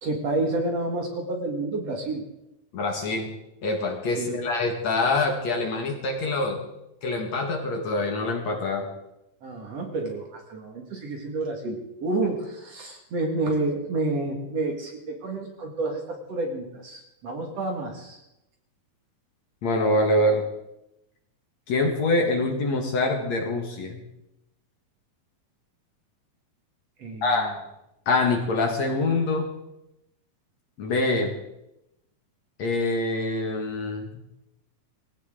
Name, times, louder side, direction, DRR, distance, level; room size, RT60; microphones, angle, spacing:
voice 1, 0.0-2.2 4.1-4.4 9.4-18.2 27.0-27.5, right 2 dB, 50° right, 2 dB, 2.7 m, -29 dB
voice 2, 2.7-3.3 3.6-6.6 7.0-8.9 19.6-20.4 21.7-24.0 27.2-27.5 28.1-29.5 30.8-31.3 32.6-34.1, left 2 dB, 55° left, 2 dB, 2.7 m, -25 dB
19.5 x 17.0 x 3.8 m, 0.88 s
omnidirectional pair, 4.1 m